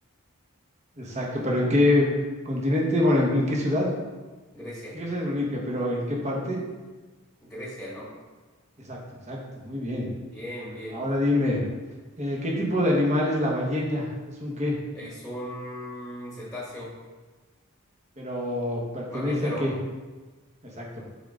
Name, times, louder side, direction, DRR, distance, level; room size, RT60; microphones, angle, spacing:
voice 1, 1.0-2.0 2.4-3.9 4.9-6.6 8.9-9.0 9.3-10.1 10.9-11.6 12.2-14.1 14.4-14.8 18.2-19.7 20.8-21.0, left 1 dB, 30° right, -3 dB, 1.3 m, -25 dB
voice 2, 4.5-5.0 7.5-8.1 10.3-11.2 14.9-16.9 19.1-19.7, equal, 5° left, -6 dB, 1.5 m, -37 dB
7.5 x 3.8 x 3.8 m, 1.3 s
head